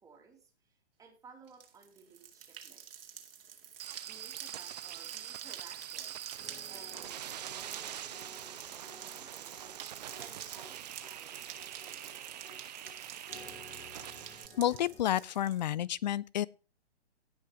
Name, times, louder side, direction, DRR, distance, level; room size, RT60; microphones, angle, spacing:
voice 1, 0.0-2.9 4.0-9.7 10.1-12.5, right 5 dB, 10° right, 2.8 m, -58 dB
sound 1, 1.5-15.7, right 8 dB, 55° right, 2.3 m, -49 dB
sound 2, 3.8-14.5, right 11 dB, 40° right, 0.5 m, -45 dB
sound 3, 6.4-15.2, left 2 dB, 65° left, 6.1 m, -56 dB
voice 2, 14.6-16.5, left 12 dB, 40° left, 0.5 m, -30 dB
17.5 x 5.9 x 4.9 m
figure-of-eight pair, 125°, 34 cm